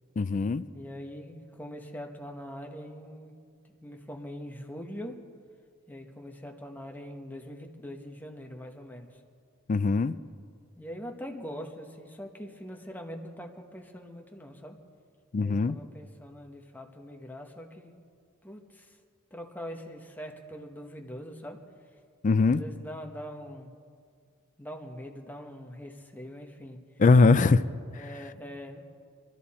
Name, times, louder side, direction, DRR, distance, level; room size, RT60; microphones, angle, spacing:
voice 1, 0.2-0.6 9.7-10.1 15.3-15.8 22.2-22.6 27.0-27.6, left 3 dB, 35° left, 14 dB, 0.4 m, -21 dB
voice 2, 0.7-3.3 3.7-5.2 5.9-9.2 10.8-14.8 15.4-17.9 18.4-19.0 19.3-21.6 22.4-23.7 24.6-26.8 27.9-28.8, equal, 10° left, 2 dB, 1.1 m, -42 dB
22.5 x 13.0 x 4.2 m, 2.1 s
head